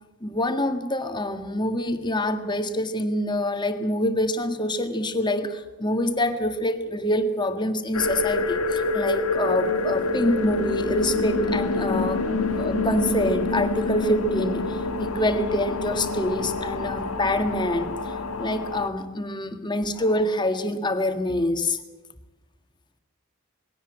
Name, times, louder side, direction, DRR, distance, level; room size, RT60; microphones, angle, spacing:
voice 1, 0.2-12.3 12.6-21.8, left 1 dB, 20° left, 7 dB, 1.6 m, -26 dB
sound 1, 7.9-18.9, left 3 dB, 90° left, 1.8 m, -27 dB
21.0 x 17.0 x 8.9 m, 1.1 s
head